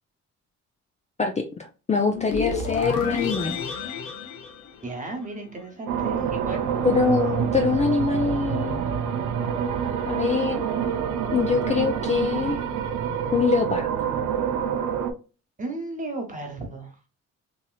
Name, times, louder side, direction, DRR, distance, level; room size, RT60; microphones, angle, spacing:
voice 1, 1.2-3.6 6.8-8.8 10.1-10.6 11.3-12.6 13.3-13.9, left 5 dB, 25° left, 3 dB, 0.4 m, -24 dB
sound 1, 2.1-5.4, left 5 dB, 80° left, 0.8 m, -30 dB
voice 2, 4.8-6.7 15.6-16.9, right 2 dB, 25° right, 3 dB, 1.1 m, -34 dB
sound 2, 5.9-15.1, right 8 dB, 90° right, 0.5 m, -27 dB
3.0 x 2.9 x 2.3 m, 0.34 s
cardioid pair, 90°, 30 cm